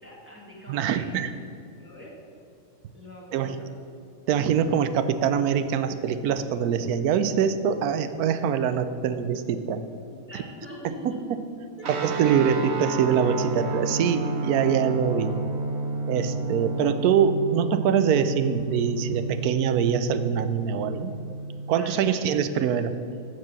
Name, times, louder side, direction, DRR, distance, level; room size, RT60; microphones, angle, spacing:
voice 1, 0.0-1.1 1.8-2.1 2.9-3.5 9.3-9.4 10.3-11.2 11.8-11.9 21.8-22.3, equal, 10° right, -4 dB, 1.9 m, -43 dB
voice 2, 0.7-1.3 3.3-3.6 4.3-9.8 10.3-10.4 11.3-11.4 11.9-15.3 16.1-21.1 21.7-22.9, right 7 dB, 90° right, 11 dB, 1.1 m, -24 dB
sound 1, 11.8-22.2, right 3 dB, 55° right, 1.0 m, -31 dB
14.0 x 4.7 x 5.9 m, 2.6 s
omnidirectional pair, 1.6 m